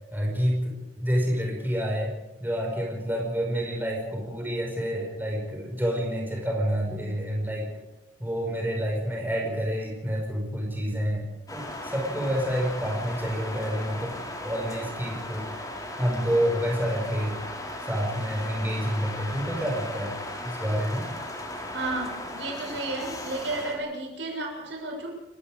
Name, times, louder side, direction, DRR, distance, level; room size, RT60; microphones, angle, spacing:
voice 1, 0.1-2.1 2.4-7.7 8.2-14.1 14.4-15.6 16.0-17.4 17.9-20.2 20.4-21.1, equal, 10° right, -1 dB, 5.2 m, -28 dB
sound 1, 11.5-23.8, left 1 dB, 20° left, 4.0 m, -37 dB
voice 2, 21.7-25.1, right 2 dB, 70° right, 1 dB, 6.9 m, -32 dB
30.0 x 17.5 x 5.0 m, 1.0 s
head